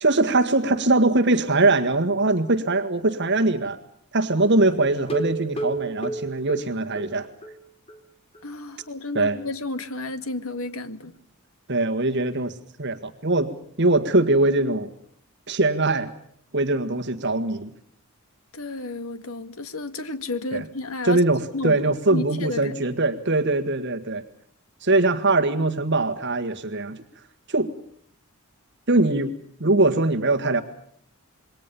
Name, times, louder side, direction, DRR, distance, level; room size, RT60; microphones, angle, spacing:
voice 1, 0.0-3.8 4.1-7.3 9.1-9.4 11.7-12.5 12.8-13.5 13.8-14.9 15.5-16.1 16.5-17.7 20.5-20.6 21.0-24.2 24.8-27.0 27.5-27.7 28.9-29.3 29.6-30.6, right 2 dB, 50° right, 1.7 m, -22 dB
sound 1, 5.1-7.6 7.9-8.0 8.3-8.4 8.8-8.9, right 2 dB, 25° left, 3.9 m, -31 dB
voice 2, 8.4-11.1 18.5-21.2 21.5-21.8 22.1-22.7, left 2 dB, 70° left, 2.0 m, -32 dB
27.5 x 22.5 x 7.0 m
head